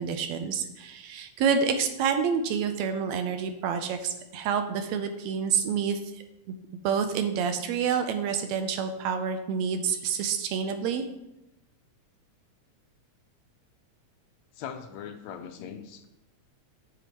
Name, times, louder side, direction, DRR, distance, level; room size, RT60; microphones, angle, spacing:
voice 1, 0.0-6.0 6.8-11.0, right 6 dB, 80° right, 7 dB, 1.8 m, -28 dB
voice 2, 14.6-16.1, left 8 dB, 80° left, 8 dB, 1.7 m, -40 dB
9.2 x 7.8 x 3.0 m, 0.91 s
omnidirectional pair, 3.3 m